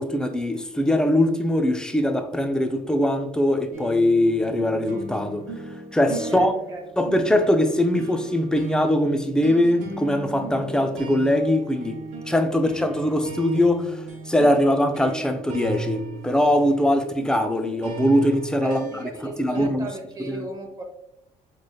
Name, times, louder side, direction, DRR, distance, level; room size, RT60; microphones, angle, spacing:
voice 1, 0.0-5.5 5.9-6.5 7.0-12.0 12.3-19.9 20.3-20.5, left 1 dB, 5° left, 0.4 m, -22 dB
sound 1, 3.7-19.7, right 3 dB, 50° right, 1.0 m, -37 dB
voice 2, 6.3-6.8 18.6-20.8, right 2 dB, 25° right, 0.9 m, -35 dB
4.0 x 3.2 x 2.3 m
cardioid pair, 90°, 15 cm